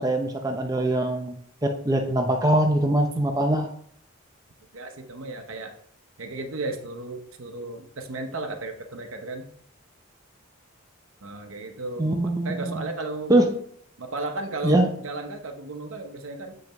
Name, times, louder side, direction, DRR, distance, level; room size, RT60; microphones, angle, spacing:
voice 1, 0.0-3.7 12.0-12.8 13.3-13.5 14.6-14.9, right 1 dB, 15° right, 2 dB, 0.5 m, -23 dB
voice 2, 4.7-5.7 6.2-9.5 11.2-13.4 14.0-16.5, right 2 dB, 65° right, 6 dB, 0.8 m, -34 dB
7.5 x 5.4 x 3.0 m, 0.63 s
head